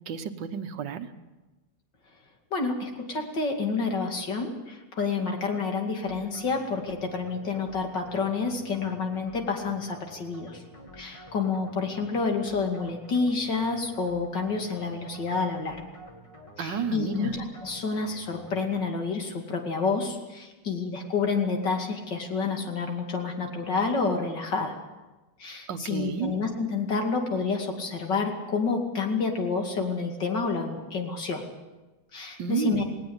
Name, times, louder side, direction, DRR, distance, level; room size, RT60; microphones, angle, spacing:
voice 1, 0.1-1.1 16.6-17.4 25.7-26.3 32.4-32.8, right 7 dB, 85° right, 9 dB, 1.8 m, -31 dB
voice 2, 2.5-10.6 11.0-15.8 16.6-24.8 25.4-31.5 32.1-32.8, left 4 dB, 75° left, 3 dB, 3.1 m, -29 dB
sound 1, 6.1-19.3, equal, 20° left, 2.1 m, -49 dB
19.0 x 18.5 x 8.0 m, 1.1 s
omnidirectional pair, 1.9 m